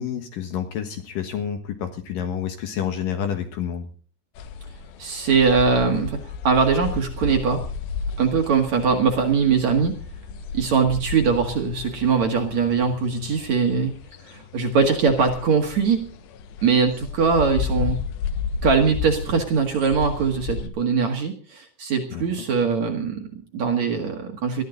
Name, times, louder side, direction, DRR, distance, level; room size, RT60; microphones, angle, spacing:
voice 1, 0.0-3.9 22.1-22.2, left 8 dB, 65° left, 7 dB, 2.8 m, -29 dB
sound 1, 4.4-20.7, left 5 dB, 85° left, 3.4 m, -33 dB
voice 2, 5.0-6.2 6.4-7.6 8.2-10.0 10.5-13.9 14.3-16.0 16.6-18.0 18.6-24.6, right 5 dB, 50° right, 3 dB, 2.6 m, -21 dB
21.0 x 13.5 x 3.9 m, 0.39 s
omnidirectional pair, 4.9 m